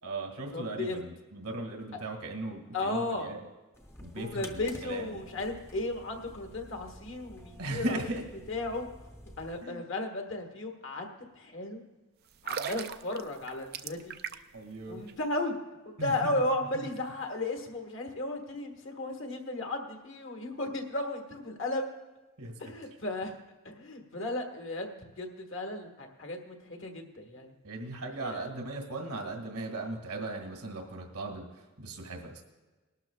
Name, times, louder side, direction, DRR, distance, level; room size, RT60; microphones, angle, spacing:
voice 1, 0.0-3.4 4.0-5.2 7.6-8.2 9.6-9.8 14.5-15.0 16.0-16.3 22.4-22.5 27.6-32.4, right 2 dB, 85° right, 3 dB, 1.9 m, -38 dB
voice 2, 0.5-1.0 1.9-2.0 2.7-3.3 4.2-8.0 8.5-9.1 9.4-11.1 11.3-11.8 12.4-14.1 14.9-15.5 15.8-21.9 22.6-23.4 23.6-27.5 28.2-28.5, left 2 dB, 55° left, 3 dB, 1.6 m, -35 dB
sound 1, 3.7-9.6, left 1 dB, 10° left, 0.7 m, -50 dB
sound 2, 12.3-14.6 14.9-15.1, right 7 dB, 45° right, 0.4 m, -38 dB
20.0 x 12.0 x 2.3 m, 1.2 s
head